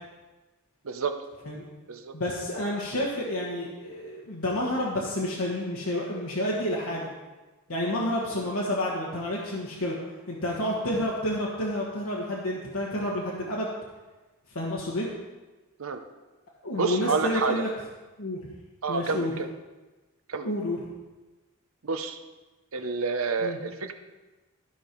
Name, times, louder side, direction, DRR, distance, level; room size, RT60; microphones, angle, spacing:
voice 1, 2.1-7.1 7.7-10.0 10.3-13.7 14.5-15.1 16.6-17.7 18.2-18.4 18.9-19.3 20.4-20.8 23.4-23.6, left 1 dB, 85° left, -4 dB, 1.4 m, -29 dB
voice 2, 16.7-17.6 18.8-19.5 20.3-20.5 21.8-22.2 22.7-23.9, right 4 dB, 70° right, 8 dB, 0.8 m, -29 dB
13.5 x 5.3 x 4.5 m, 1.2 s
head